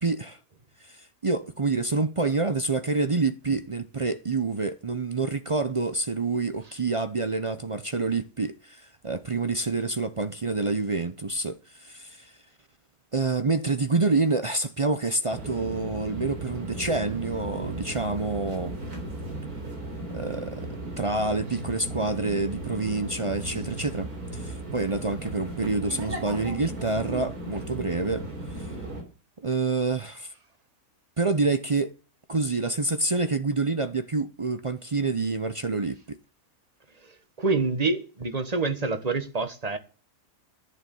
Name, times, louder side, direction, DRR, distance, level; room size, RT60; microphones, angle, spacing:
voice 1, 0.0-0.4 0.8-12.3 13.1-18.8 20.1-20.7 21.0-28.3 28.6-28.7 29.4-30.3 31.2-31.9 32.3-36.2, right 3 dB, 45° right, 0.4 m, -27 dB
sound 1, 15.3-29.0, right 1 dB, 80° right, 4.1 m, -36 dB
voice 2, 37.0-39.8, right 3 dB, 25° right, 1.4 m, -27 dB
11.0 x 9.6 x 7.0 m
omnidirectional pair, 1.6 m